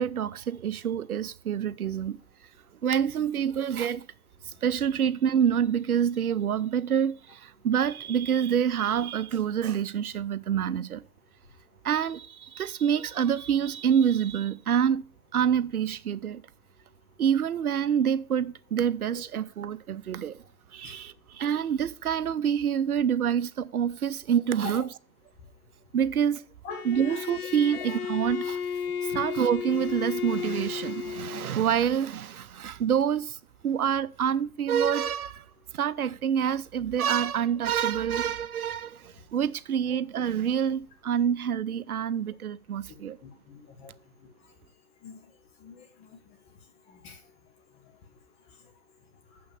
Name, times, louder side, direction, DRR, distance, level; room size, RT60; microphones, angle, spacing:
voice 1, 0.0-2.2 2.8-4.1 4.4-11.0 11.8-15.0 15.3-16.4 17.2-20.4 20.7-25.0 25.9-26.4 26.8-28.6 29.0-35.5 35.7-43.2, right 8 dB, 75° right, 0.7 m, -27 dB
Bowed string instrument, 26.7-31.5, left 7 dB, 75° left, 0.9 m, -33 dB
voice 2, 43.2-43.9 45.0-45.2 45.6-46.1 47.0-47.2, left 5 dB, 15° left, 0.9 m, -42 dB
6.7 x 5.7 x 6.9 m
hypercardioid pair, 140°, 44 cm